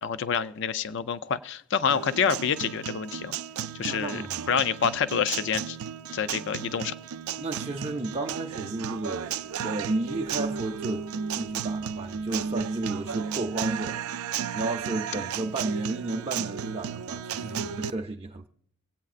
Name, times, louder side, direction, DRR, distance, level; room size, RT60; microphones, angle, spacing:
voice 1, 0.0-3.3 3.8-4.2 4.5-5.8 6.1-6.9, left 7 dB, 55° left, 0.4 m, -27 dB
Guitar, 1.9-17.9, right 7 dB, 85° right, 0.4 m, -34 dB
voice 2, 3.8-4.5 7.4-14.0 14.5-18.5, right 2 dB, 30° right, 0.5 m, -32 dB
24.5 x 8.4 x 2.4 m
head